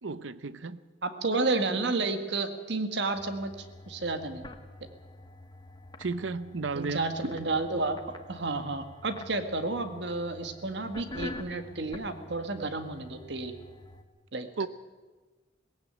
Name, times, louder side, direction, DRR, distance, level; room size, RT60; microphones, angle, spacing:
voice 1, 0.0-0.8 6.0-7.0 14.6-14.7, right 4 dB, 80° right, 15 dB, 0.8 m, -33 dB
voice 2, 1.0-3.5 3.9-4.4 6.7-13.5 14.3-14.5, right 3 dB, 60° right, 8 dB, 1.7 m, -31 dB
sound 1, 3.1-14.0, left 2 dB, 25° left, 1.2 m, -47 dB
18.5 x 16.0 x 9.0 m, 1.3 s
head